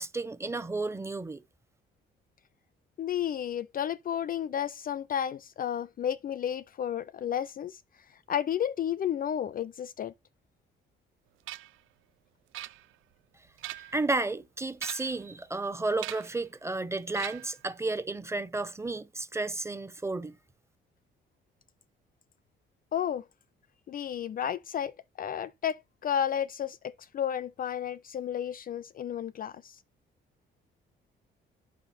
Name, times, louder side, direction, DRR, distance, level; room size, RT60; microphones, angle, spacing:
voice 1, 0.0-1.4 13.9-20.4, right 2 dB, 15° right, 0.8 m, -32 dB
voice 2, 3.0-7.8 8.3-10.1 13.7-13.8 22.9-23.2 23.9-29.8, left 9 dB, 45° left, 0.4 m, -32 dB
sound 1, 11.5-11.8 12.5-13.1 13.5-14.1 14.7-15.3 16.0-16.4 17.1-17.6, right 15 dB, 85° right, 0.5 m, -41 dB
8.8 x 5.4 x 4.2 m
cardioid pair, 90°, 20 cm